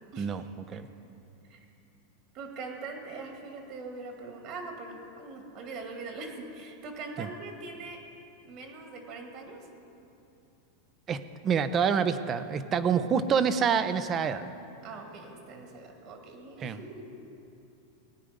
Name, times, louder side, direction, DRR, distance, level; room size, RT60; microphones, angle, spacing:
voice 1, 0.2-0.9 7.2-7.3 11.1-14.5 16.6-16.8, right 7 dB, 30° right, 11 dB, 0.7 m, -27 dB
voice 2, 2.3-8.0 8.4-9.6 14.8-17.0, right 3 dB, 50° right, 3 dB, 2.2 m, -42 dB
17.5 x 9.0 x 5.2 m, 2.7 s
hypercardioid pair, 115°, 0 cm